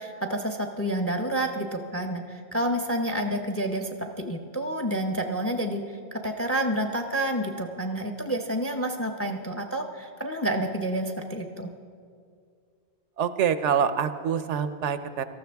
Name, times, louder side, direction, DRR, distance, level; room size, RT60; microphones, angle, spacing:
voice 1, 0.0-11.7, right 1 dB, 15° left, 5 dB, 0.6 m, -29 dB
voice 2, 13.2-15.2, right 7 dB, 80° right, 12 dB, 0.9 m, -25 dB
18.5 x 13.5 x 3.5 m, 2.2 s
omnidirectional pair, 1.2 m